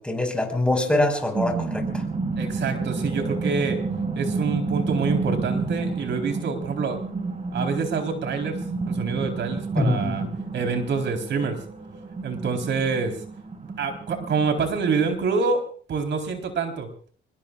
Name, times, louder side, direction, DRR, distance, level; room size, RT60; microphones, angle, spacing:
voice 1, 0.0-2.0 9.8-10.3, left 1 dB, 5° left, 3 dB, 5.5 m, -24 dB
sound 1, 0.9-15.1, right 3 dB, 35° right, 5.5 m, -30 dB
voice 2, 2.4-3.8 4.2-7.0 7.5-8.6 8.9-10.2 10.5-11.6 12.2-13.1 13.6-15.6 15.9-16.9, right 5 dB, 65° right, 5 dB, 4.1 m, -26 dB
25.5 x 21.5 x 2.5 m, 0.44 s
cardioid pair, 90°, 20 cm